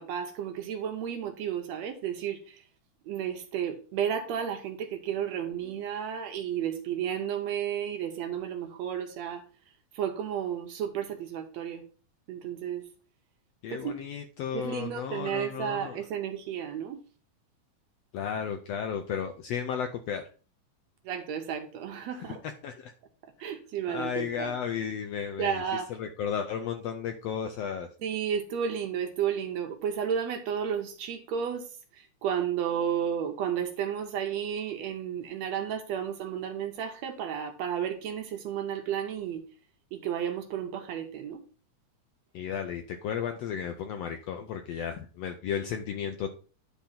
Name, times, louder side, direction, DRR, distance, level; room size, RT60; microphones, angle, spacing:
voice 1, 0.0-2.6 3.1-9.4 9.9-11.8 12.3-12.8 13.7-13.9 14.5-17.0 21.1-22.4 23.4-24.5 25.4-25.9 28.0-31.7 31.9-39.4 39.9-41.4, right 8 dB, 70° right, 6 dB, 1.9 m, -32 dB
voice 2, 13.6-16.0 18.1-20.2 22.2-22.9 23.4-23.5 23.9-27.9 42.3-46.3, left 7 dB, 75° left, 6 dB, 1.5 m, -34 dB
10.5 x 3.5 x 5.6 m, 0.38 s
omnidirectional pair, 3.6 m